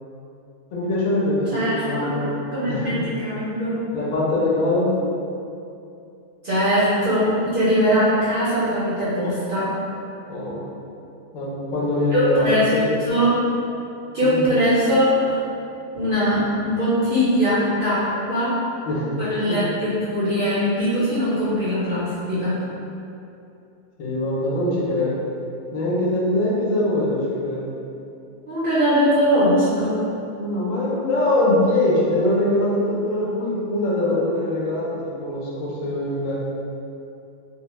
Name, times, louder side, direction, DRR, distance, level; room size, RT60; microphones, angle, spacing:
voice 1, 0.7-2.4 2.7-2.9 3.9-5.0 10.3-10.6 11.3-12.5 12.7-12.9 14.2-14.4 18.9-19.1 19.5-19.6 24.0-25.2 25.7-27.7 30.4-36.3, left 1 dB, 75° left, -5 dB, 0.9 m, -22 dB
voice 2, 2.5-3.8 6.4-9.7 12.1-12.7 13.0-13.4 14.1-15.4 15.9-18.6 19.2-22.6 28.5-30.0, equal, 55° right, -11 dB, 0.6 m, -21 dB
2.3 x 2.1 x 2.9 m, 2.7 s
omnidirectional pair, 1.4 m